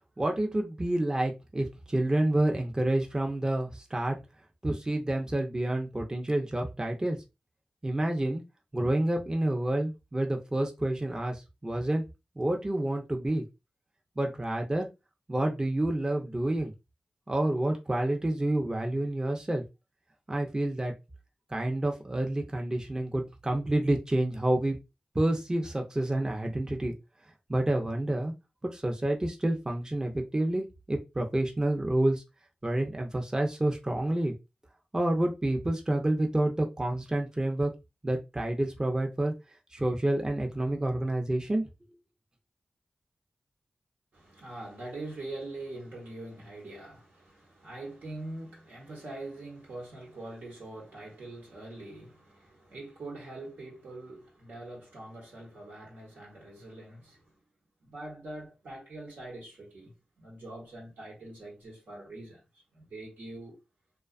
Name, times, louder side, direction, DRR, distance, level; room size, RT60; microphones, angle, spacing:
voice 1, 0.2-4.2 4.6-7.2 7.8-8.4 8.7-12.0 12.4-13.4 14.2-14.9 15.3-16.7 17.3-19.6 20.3-20.9 21.5-24.8 25.1-26.9 27.5-28.3 28.7-32.2 32.6-34.3 34.9-37.7 38.0-39.3 39.7-41.6, right 1 dB, 25° right, 0.5 m, -28 dB
voice 2, 44.1-57.3 57.8-62.4 62.7-63.6, right 2 dB, 90° right, 1.2 m, -43 dB
2.5 x 2.3 x 2.3 m
cardioid pair, 50°, 3 cm